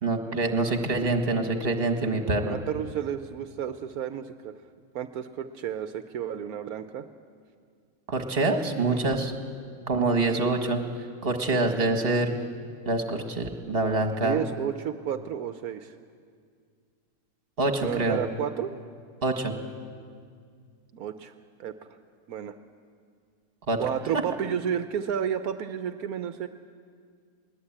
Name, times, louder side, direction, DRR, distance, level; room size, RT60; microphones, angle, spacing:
voice 1, 0.0-2.6 8.1-9.3 9.9-10.8 11.2-12.3 12.9-14.4 17.6-18.2 19.2-19.6 23.7-23.8, right 2 dB, 40° right, 5 dB, 1.9 m, -25 dB
voice 2, 2.5-4.6 4.9-7.0 8.9-9.2 14.1-16.0 17.8-18.7 20.9-21.3 21.6-22.0 22.3-22.6 23.8-26.5, right 9 dB, 80° right, 9 dB, 1.2 m, -32 dB
21.0 x 19.0 x 8.8 m, 2.1 s
omnidirectional pair, 1.5 m